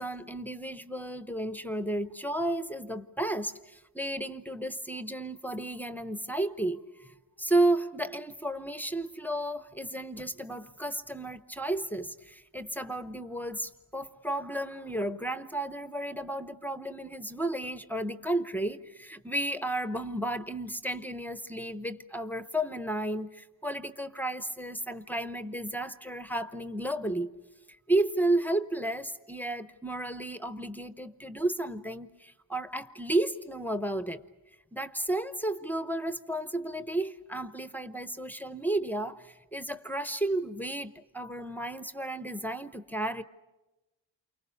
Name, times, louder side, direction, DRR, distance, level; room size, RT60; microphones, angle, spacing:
voice 1, 0.0-27.3 27.9-34.2 34.7-43.2, right 1 dB, 5° left, 0.8 m, -32 dB
29.0 x 24.0 x 7.0 m
cardioid pair, 100°, 45 cm